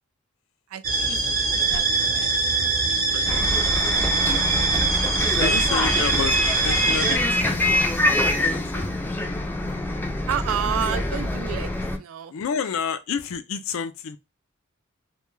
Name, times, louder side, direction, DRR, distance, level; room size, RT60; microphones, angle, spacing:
voice 1, 0.7-1.2 1.5-2.3 5.4-5.6 10.3-11.7 12.0-12.3, right 8 dB, 90° right, 0.3 m, -30 dB
sound 1, 0.8-7.2, right 3 dB, 45° right, 0.6 m, -23 dB
voice 2, 3.1-3.7 5.3-8.9 12.3-14.2, left 6 dB, 75° left, 0.4 m, -31 dB
Bus, 3.3-12.0, left 1 dB, 10° left, 0.4 m, -25 dB
2.2 x 2.2 x 3.1 m
head